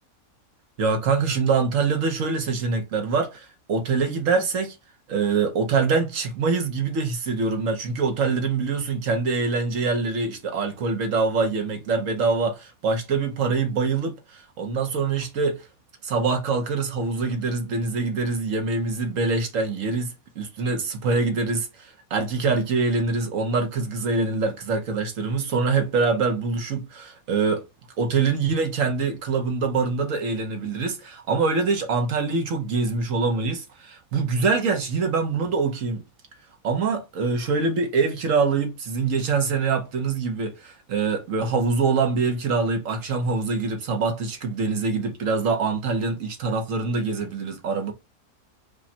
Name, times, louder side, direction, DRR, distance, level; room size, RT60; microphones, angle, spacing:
voice 1, 0.8-4.8 5.1-15.6 16.0-27.6 28.0-36.0 36.6-47.9, right 4 dB, 65° right, 1.3 m, -24 dB
5.1 x 2.3 x 2.8 m
omnidirectional pair, 1.5 m